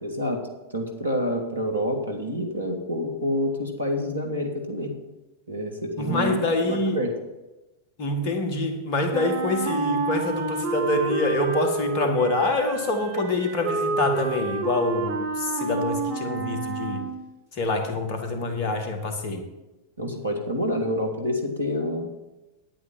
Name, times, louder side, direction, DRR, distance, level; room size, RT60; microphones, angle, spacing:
voice 1, 0.0-0.4 0.7-4.9 5.5-7.1 20.0-22.1, left 1 dB, 85° right, 2 dB, 1.8 m, -28 dB
voice 2, 6.0-7.0 8.0-17.1 17.5-19.5, left 2 dB, 45° left, 5 dB, 1.8 m, -26 dB
Wind instrument woodwind instrument, 9.1-17.2, right 4 dB, 50° right, 1.3 m, -29 dB
9.9 x 8.7 x 5.5 m, 1.0 s
figure-of-eight pair, 90°, 0 cm